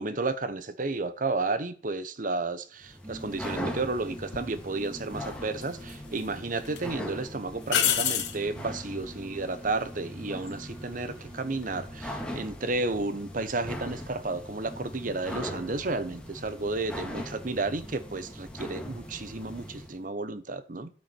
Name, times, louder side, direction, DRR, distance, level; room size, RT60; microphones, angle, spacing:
voice 1, 0.0-20.9, right 3 dB, 50° right, 0.9 m, -32 dB
sound 1, 2.8-20.0, equal, 5° left, 1.9 m, -41 dB
sound 2, 2.9-13.3, right 1 dB, 15° right, 4.1 m, -48 dB
sound 3, 4.3-4.5 5.6-6.3 6.6-6.8 7.7-8.4 11.5-11.9, left 9 dB, 75° left, 1.7 m, -27 dB
12.5 x 6.4 x 4.5 m
head